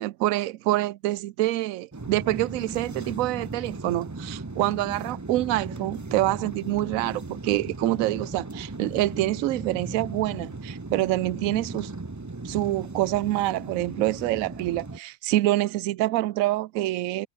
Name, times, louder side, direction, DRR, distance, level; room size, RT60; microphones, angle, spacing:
voice 1, 0.0-11.9 12.4-17.3, right 16 dB, 70° right, 0.9 m, -26 dB
sound 1, 1.9-15.0, right 3 dB, 20° right, 0.6 m, -37 dB
omnidirectional pair, 1.6 m